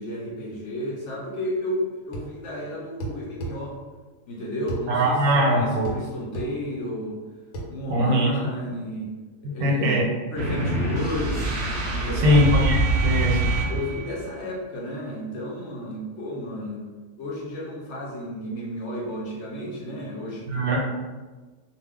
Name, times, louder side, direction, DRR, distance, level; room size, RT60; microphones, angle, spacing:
voice 1, 0.0-3.8 4.3-7.2 7.7-9.1 9.4-9.9 10.3-11.5 11.9-12.5 13.7-16.9 17.2-20.8, equal, 65° left, -4 dB, 0.8 m, -32 dB
sound 1, 2.1-2.3 3.0-3.6 4.7-4.9 5.8-6.0 6.3-6.5 7.5-7.7, right 2 dB, 85° left, 1.1 m, -32 dB
voice 2, 4.9-5.9 7.9-8.3 9.6-10.1 12.2-13.5 20.5-20.8, equal, 85° right, -1 dB, 1.1 m, -21 dB
sound 2, 10.4-14.2, right 2 dB, 65° right, 0.5 m, -25 dB
2.5 x 2.2 x 3.5 m, 1.3 s
omnidirectional pair, 1.5 m